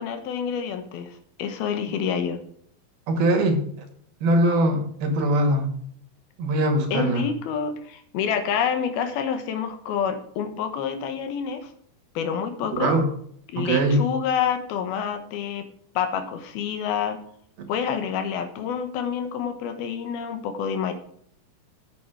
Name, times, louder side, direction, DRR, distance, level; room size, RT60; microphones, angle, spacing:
voice 1, 0.0-2.4 6.9-11.7 12.1-12.9 13.5-15.7 16.0-17.2 17.7-20.9, left 7 dB, 90° left, 8 dB, 3.2 m, -28 dB
voice 2, 3.1-3.6 4.2-5.7 6.4-7.3 12.7-13.1 13.5-14.0, right 1 dB, 85° right, 4 dB, 3.9 m, -21 dB
8.7 x 8.7 x 6.2 m, 0.63 s
omnidirectional pair, 4.3 m